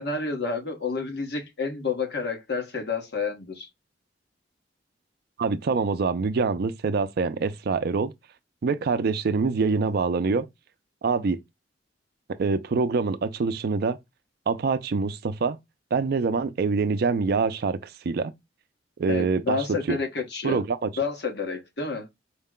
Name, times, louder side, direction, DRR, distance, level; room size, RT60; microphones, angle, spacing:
voice 1, 0.0-3.7 19.1-20.6 21.0-22.1, left 4 dB, 65° left, 1.1 m, -29 dB
voice 2, 5.4-8.1 8.6-10.5 11.0-11.4 12.4-14.0 14.5-15.6 15.9-18.3 19.0-19.6 19.9-20.0 20.4-20.9, right 4 dB, 55° right, 0.4 m, -25 dB
4.6 x 2.1 x 3.6 m
head